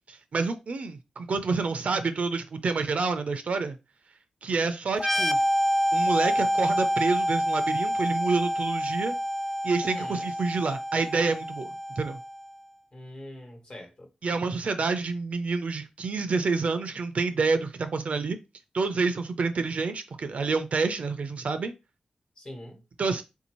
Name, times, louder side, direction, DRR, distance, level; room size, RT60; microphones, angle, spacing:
voice 1, 0.1-3.8 4.4-5.4 5.9-9.2 9.6-11.7 12.0-12.2 14.2-18.4 18.7-21.7 23.0-23.2, right 4 dB, 65° right, 0.4 m, -28 dB
sound 1, 4.9-12.5, equal, 10° left, 0.3 m, -27 dB
voice 2, 9.8-10.3 12.9-14.1 22.4-22.8, left 1 dB, 45° left, 1.2 m, -43 dB
3.6 x 2.6 x 3.0 m
cardioid pair, 65°, 2 cm